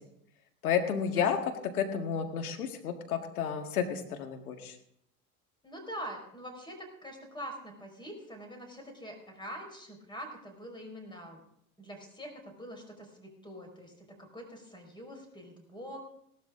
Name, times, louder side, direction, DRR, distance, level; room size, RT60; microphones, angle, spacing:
voice 1, 0.6-1.4 1.7-4.8, left 7 dB, 75° left, 5 dB, 1.8 m, -31 dB
voice 2, 5.6-11.4 11.8-13.9 14.2-16.0, equal, 10° left, 4 dB, 5.1 m, -44 dB
18.0 x 12.5 x 3.8 m, 0.73 s
figure-of-eight pair, 75°, 44 cm